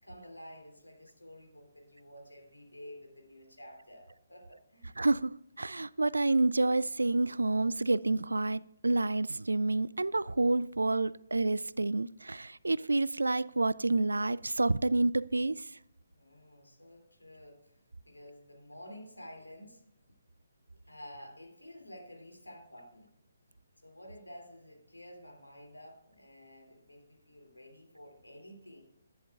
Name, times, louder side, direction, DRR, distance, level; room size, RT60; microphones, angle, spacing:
voice 1, 0.0-4.9 16.2-19.8 20.9-23.1 23.8-28.8, equal, 85° left, 3.0 m, -51 dB
voice 2, 5.0-15.7, right 2 dB, 75° right, 0.3 m, -29 dB
11.0 x 10.0 x 2.5 m
figure-of-eight pair, 140°, 0 cm